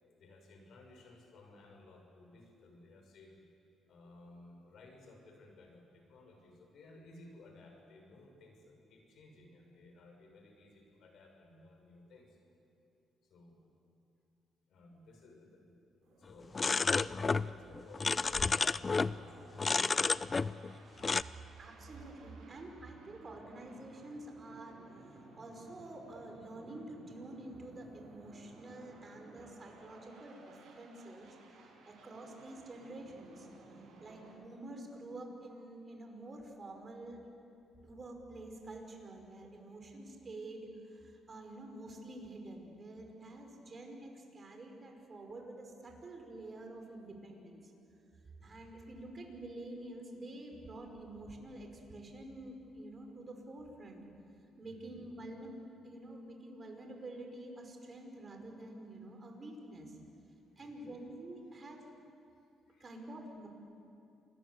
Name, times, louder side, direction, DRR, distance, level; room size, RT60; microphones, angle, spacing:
voice 1, 0.2-3.4 3.9-12.4 13.2-13.6 14.7-15.7 16.2-20.3 48.4-48.6 54.6-55.0 60.5-61.0 62.3-63.0, left 2 dB, 70° left, 2 dB, 6.6 m, -58 dB
sound 1, 16.0-34.4, right 3 dB, 80° right, 6.9 m, -57 dB
sound 2, 16.5-17.5 17.7-19.2 19.6-20.7 21.0-21.2, left 4 dB, 30° left, 0.5 m, -31 dB
voice 2, 21.6-24.8 25.0-31.4 31.9-33.5 34.0-37.2 37.8-47.7 48.4-54.0 54.6-59.9 60.6-61.8 62.8-63.5, right 1 dB, 35° right, 2 dB, 5.5 m, -48 dB
28.0 x 20.5 x 8.2 m, 2.6 s
cardioid pair, 90°, 0 cm